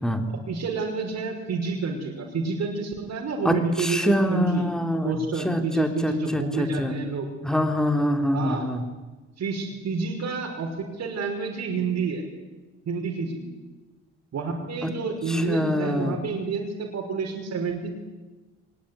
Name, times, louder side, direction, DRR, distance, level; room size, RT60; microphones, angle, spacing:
voice 1, 0.3-4.7 5.0-7.3 8.3-8.7 9.4-10.7 10.9-12.2 12.9-13.4 14.3-17.9, right 4 dB, 60° right, 0 dB, 5.4 m, -29 dB
voice 2, 3.4-7.0 7.4-8.8 14.8-14.9 15.3-16.2, equal, ahead, 5 dB, 3.0 m, -25 dB
23.0 x 20.5 x 9.9 m, 1.2 s
cardioid pair, 90°, 30 cm